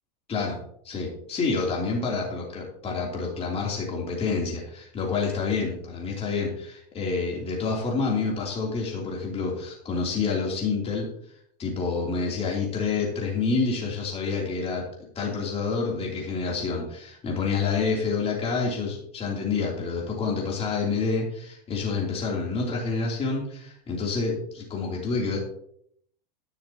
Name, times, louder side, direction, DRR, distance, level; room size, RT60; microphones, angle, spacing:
voice 1, 0.8-11.1 11.6-14.9 15.1-25.4, left 4 dB, 30° left, -2 dB, 3.2 m, -28 dB
12.0 x 10.5 x 2.9 m, 0.67 s
hypercardioid pair, 100°, 21 cm